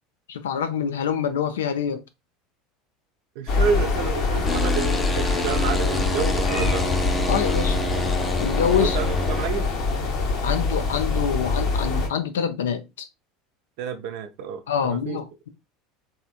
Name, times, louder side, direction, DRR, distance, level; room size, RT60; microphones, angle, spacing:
voice 1, 0.3-2.0 7.3-7.8 8.4-9.0 10.4-13.1 14.7-15.5, left 8 dB, 80° left, 0.4 m, -26 dB
voice 2, 3.4-6.9 8.8-9.7 13.8-15.2, right 6 dB, 65° right, 0.4 m, -29 dB
sound 1, 3.5-12.1, left 3 dB, 55° left, 0.9 m, -24 dB
sound 2, 4.4-9.5, left 1 dB, 15° left, 0.5 m, -28 dB
3.4 x 2.8 x 2.4 m
hypercardioid pair, 75°, 0 cm